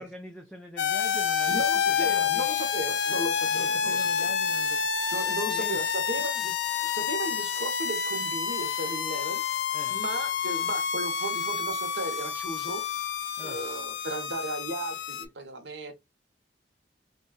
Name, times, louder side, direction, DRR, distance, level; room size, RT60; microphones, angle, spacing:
voice 1, 0.0-2.5 3.5-5.8 9.7-10.0 13.4-13.6, equal, 5° left, 0.5 m, -44 dB
sound 1, 0.8-15.2, left 7 dB, 90° left, 0.5 m, -29 dB
voice 2, 1.5-4.3 5.1-9.4 9.9-15.9, right 1 dB, 80° right, 0.8 m, -36 dB
3.9 x 2.2 x 2.2 m
head